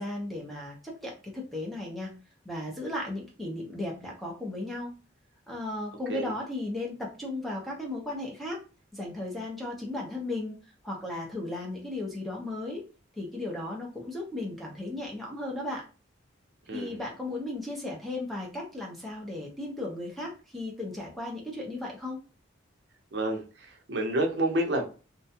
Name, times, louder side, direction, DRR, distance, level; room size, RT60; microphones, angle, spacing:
voice 1, 0.0-2.1 2.4-4.9 5.5-8.6 8.9-10.6 10.8-12.8 13.2-15.8 16.7-22.2, left 2 dB, ahead, -2 dB, 0.6 m, -35 dB
voice 2, 16.7-17.0 23.1-24.8, right 1 dB, 60° right, 2 dB, 0.6 m, -29 dB
2.4 x 2.2 x 2.7 m, 0.34 s
head